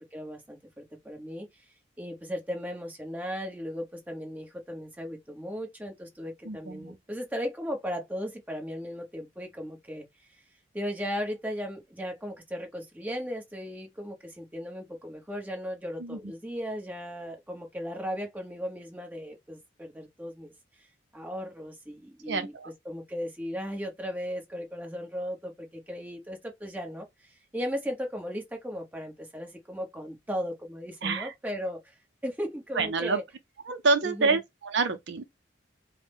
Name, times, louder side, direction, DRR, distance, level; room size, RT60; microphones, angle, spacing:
voice 1, 0.1-1.6 2.0-10.4 10.7-20.9 21.1-22.5 22.8-33.2 34.0-34.4, equal, 10° right, 1.0 m, -36 dB
voice 2, 6.5-7.0 16.0-16.2 22.3-22.7 31.0-31.3 32.8-33.2 33.7-35.2, right 4 dB, 60° right, 0.5 m, -27 dB
4.6 x 2.1 x 3.5 m
head